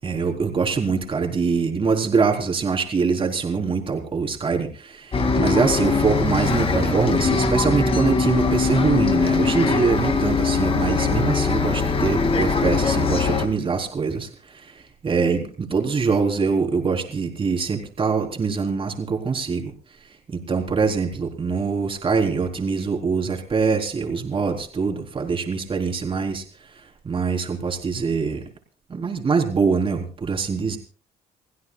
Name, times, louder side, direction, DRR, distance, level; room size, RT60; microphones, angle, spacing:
voice 1, 0.0-19.7 20.3-26.4 27.0-28.4 28.9-30.8, right 5 dB, 30° right, 2 dB, 4.0 m, -23 dB
Bus, 5.1-13.5, left 4 dB, 35° left, 2.5 m, -21 dB
29.5 x 16.0 x 2.4 m, 0.41 s
cardioid pair, 110°, 17 cm